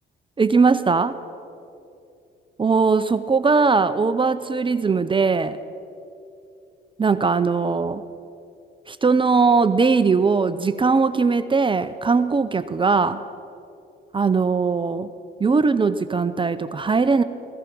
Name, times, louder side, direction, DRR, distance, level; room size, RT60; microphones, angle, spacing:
voice 1, 0.4-1.2 2.6-5.6 7.0-8.0 8.9-13.2 14.1-15.1 15.4-17.2, right 4 dB, 25° right, 12 dB, 0.6 m, -20 dB
15.5 x 14.5 x 6.0 m, 2.6 s
cardioid pair, 90°, 20 cm